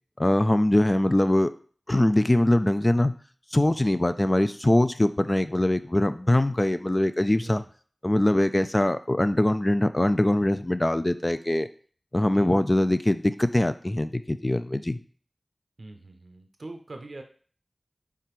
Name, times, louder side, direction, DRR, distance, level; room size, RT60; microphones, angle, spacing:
voice 1, 0.2-1.5 1.9-3.1 3.5-7.6 8.0-11.7 12.1-15.0, left 1 dB, 30° left, 11 dB, 0.3 m, -22 dB
voice 2, 15.8-17.2, right 2 dB, 75° right, 4 dB, 0.5 m, -42 dB
4.9 x 3.3 x 3.0 m, 0.44 s
wide cardioid pair, 40°, 0 cm